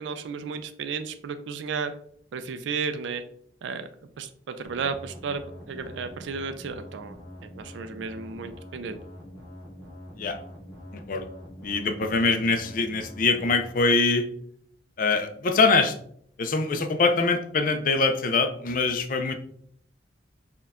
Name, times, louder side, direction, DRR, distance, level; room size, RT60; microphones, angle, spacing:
voice 1, 0.0-1.9 2.3-3.2 3.6-3.9 4.2-7.2 7.4-9.0, right 5 dB, 80° right, 9 dB, 0.4 m, -33 dB
sound 1, 4.6-13.7, equal, 20° left, 1.6 m, -44 dB
voice 2, 10.9-11.3 11.6-14.3 15.0-16.0 16.4-19.3, left 3 dB, 50° left, 7 dB, 0.4 m, -23 dB
4.4 x 2.2 x 3.5 m, 0.64 s
head